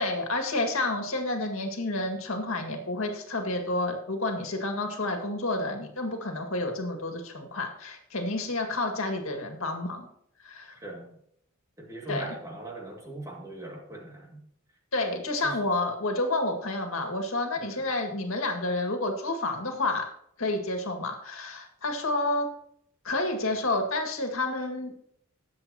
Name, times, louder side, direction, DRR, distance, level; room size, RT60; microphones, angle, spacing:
voice 1, 0.0-10.1 10.4-10.7 12.1-12.4 14.9-20.1 20.4-22.5 23.0-24.9, left 2 dB, 75° left, 3 dB, 2.1 m, -30 dB
voice 2, 10.8-11.2 11.8-14.4 15.4-15.6 17.6-17.8, right 2 dB, 15° right, -1 dB, 2.3 m, -40 dB
19.0 x 7.6 x 3.0 m, 0.69 s
head